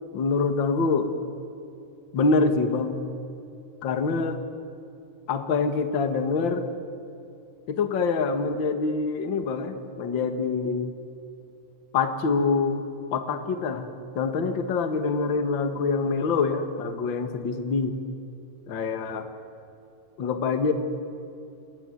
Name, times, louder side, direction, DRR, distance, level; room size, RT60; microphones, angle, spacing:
voice 1, 0.1-1.1 2.1-3.0 3.8-4.4 5.3-6.7 7.7-10.9 11.9-12.8 13.1-13.9 14.2-18.0 18.7-19.3 20.2-20.7, left 4 dB, 45° left, 8 dB, 2.1 m, -25 dB
28.0 x 22.0 x 9.2 m, 2.7 s
omnidirectional pair, 3.8 m